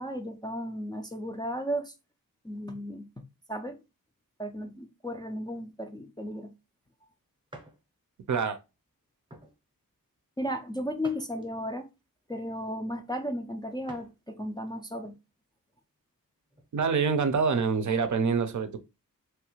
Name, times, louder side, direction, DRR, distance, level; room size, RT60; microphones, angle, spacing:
voice 1, 0.0-1.9 2.4-3.1 3.5-3.8 4.4-6.5 10.4-11.9 12.3-15.1, equal, 15° left, 0.3 m, -34 dB
sound 1, 7.5-7.8 8.4-8.6 9.3-9.6 11.0-11.8 13.9-14.2 14.7-14.8 16.4-17.1, right 1 dB, 15° right, 0.7 m, -50 dB
voice 2, 8.3-8.6 16.7-18.8, right 5 dB, 55° right, 0.5 m, -26 dB
3.1 x 2.4 x 2.9 m
wide cardioid pair, 125°, 35 cm